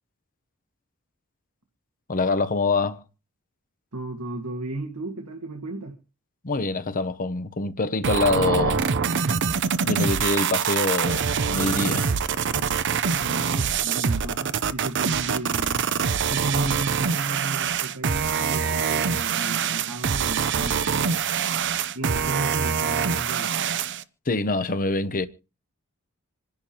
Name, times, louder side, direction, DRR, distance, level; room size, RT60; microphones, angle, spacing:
voice 1, 2.1-3.0 6.4-8.9 9.9-12.1 24.3-25.3, left 3 dB, 40° left, 0.8 m, -25 dB
voice 2, 3.9-6.0 13.0-15.9 16.3-21.1 21.9-23.7, right 2 dB, 85° right, 1.8 m, -33 dB
sound 1, 8.0-24.0, right 6 dB, 55° right, 0.6 m, -24 dB
27.5 x 10.5 x 2.9 m
head